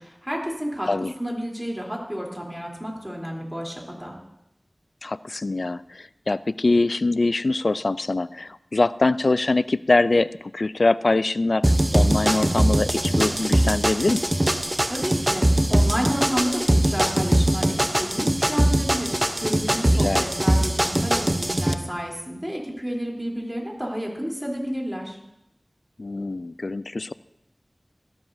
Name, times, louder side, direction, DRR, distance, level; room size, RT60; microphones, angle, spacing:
voice 1, 0.0-4.1 14.8-25.2, equal, 10° right, -2 dB, 3.4 m, -31 dB
voice 2, 5.0-14.3 19.9-20.3 26.0-27.1, left 2 dB, 80° left, 16 dB, 0.3 m, -23 dB
sound 1, 11.6-21.7, right 1 dB, 25° right, 0.8 m, -21 dB
17.5 x 13.5 x 2.7 m, 0.85 s
wide cardioid pair, 45°, 0 cm